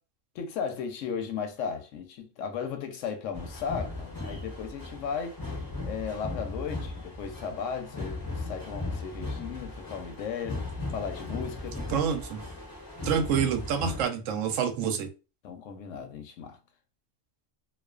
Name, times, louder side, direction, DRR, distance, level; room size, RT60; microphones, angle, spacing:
voice 1, 0.3-5.4 5.8-10.6 10.9-11.8 15.4-16.6, left 6 dB, 80° left, 0.9 m, -35 dB
sound 1, 3.3-14.0, left 2 dB, 25° left, 0.5 m, -37 dB
voice 2, 11.9-12.4 13.0-15.1, right 7 dB, 80° right, 0.9 m, -27 dB
2.3 x 2.3 x 2.3 m
omnidirectional pair, 1.3 m